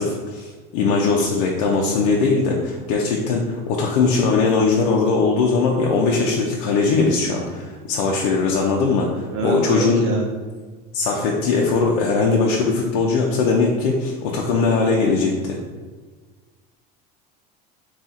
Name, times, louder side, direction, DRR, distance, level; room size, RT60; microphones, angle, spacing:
voice 1, 0.0-10.0 10.9-15.6, left 4 dB, 90° left, -2 dB, 0.6 m, -20 dB
voice 2, 9.3-10.2, right 2 dB, 70° right, 1 dB, 0.8 m, -24 dB
3.6 x 2.4 x 4.1 m, 1.4 s
cardioid pair, 155°, 20 cm